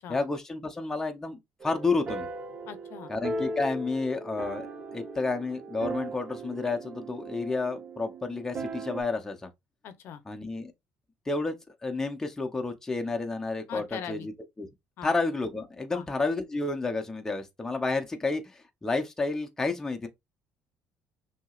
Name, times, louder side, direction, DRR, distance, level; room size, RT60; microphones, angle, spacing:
voice 1, 0.1-2.3 3.1-9.5 10.3-10.7 11.3-11.5 11.8-14.3 14.6-14.7 15.0-20.1, left 3 dB, 10° left, 0.7 m, -30 dB
sound 1, 1.6-9.0, right 2 dB, 35° right, 0.9 m, -38 dB
voice 2, 2.7-3.1 9.8-10.2 13.7-14.3 15.0-15.1 15.9-16.1, left 8 dB, 55° left, 0.7 m, -40 dB
5.9 x 2.8 x 2.4 m
cardioid pair, 140°, 5 cm